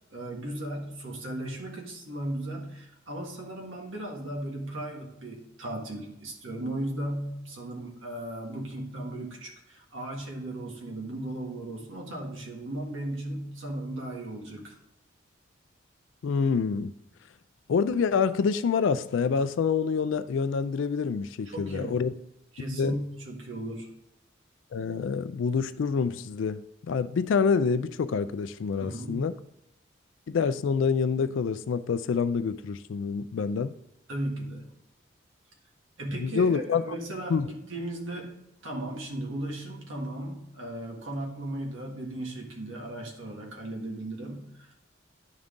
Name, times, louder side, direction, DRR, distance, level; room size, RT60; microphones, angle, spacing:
voice 1, 0.1-14.8 21.4-22.1 22.5-23.9 28.8-29.3 34.1-34.7 36.0-38.3 38.6-44.8, right 1 dB, 85° right, 1.6 m, -36 dB
voice 2, 16.2-16.9 17.7-22.1 22.8-23.0 24.7-29.3 30.3-33.7 36.2-36.8 37.3-37.5, left 5 dB, 75° left, 0.3 m, -27 dB
11.0 x 3.6 x 3.8 m
head